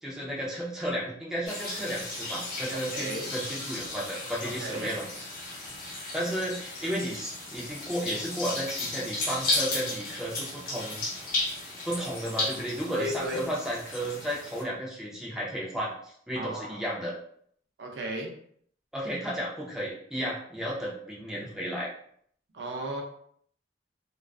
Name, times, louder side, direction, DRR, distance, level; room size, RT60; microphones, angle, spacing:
voice 1, 0.0-5.1 6.1-11.0 11.9-15.9 16.3-17.1 18.9-21.9, equal, 5° right, -5 dB, 0.4 m, -33 dB
sound 1, 1.4-14.6, left 2 dB, 50° left, 0.8 m, -35 dB
voice 2, 2.7-3.3 4.4-4.9 12.9-13.5 16.3-16.8 17.8-18.3 22.5-23.0, right 1 dB, 70° right, 1 dB, 0.5 m, -35 dB
2.3 x 2.3 x 2.3 m, 0.63 s
head